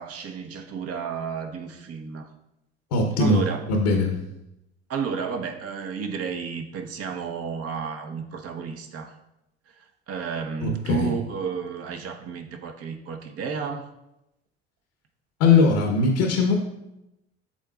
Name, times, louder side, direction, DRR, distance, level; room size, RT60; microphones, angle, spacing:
voice 1, 0.0-2.3 3.2-3.6 4.9-9.1 9.8-13.9, right 6 dB, 55° right, 4 dB, 1.1 m, -32 dB
voice 2, 2.9-4.2 10.6-11.2 15.4-16.5, left 3 dB, 75° left, 2 dB, 1.0 m, -20 dB
11.0 x 3.9 x 2.4 m, 0.89 s
hypercardioid pair, 65°, 30 cm